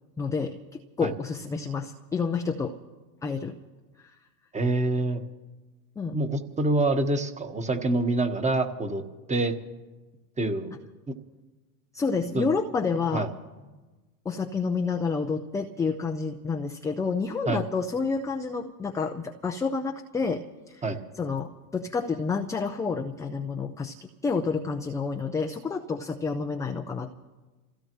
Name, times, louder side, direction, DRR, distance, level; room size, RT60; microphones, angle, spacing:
voice 1, 0.2-2.8 3.2-3.6 6.0-6.2 11.9-13.3 14.3-20.8 21.2-27.2, left 4 dB, 5° left, 3 dB, 0.4 m, -29 dB
voice 2, 4.5-5.2 6.1-9.0 9.3-9.5 10.4-10.8 12.3-12.5 13.1-13.3 17.5-17.6 20.8-21.0, right 2 dB, 15° right, 7 dB, 1.3 m, -26 dB
28.0 x 16.0 x 3.1 m, 1.2 s
hypercardioid pair, 110°, 46 cm